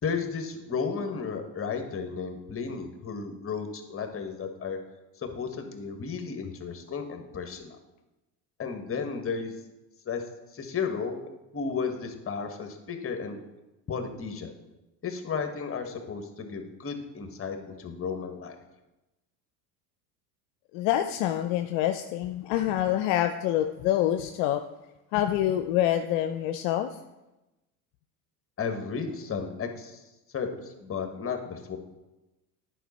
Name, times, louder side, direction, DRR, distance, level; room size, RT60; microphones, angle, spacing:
voice 1, 0.0-4.8 5.2-7.8 8.6-9.5 10.0-10.2 10.5-11.2 11.5-13.4 13.9-14.5 15.0-18.6 28.6-30.0 30.3-31.8, left 5 dB, 30° left, 6 dB, 1.4 m, -33 dB
voice 2, 20.7-24.7 25.1-27.0, left 12 dB, 65° left, 8 dB, 0.6 m, -26 dB
10.0 x 5.1 x 4.2 m, 1.0 s
hypercardioid pair, 85°, 46 cm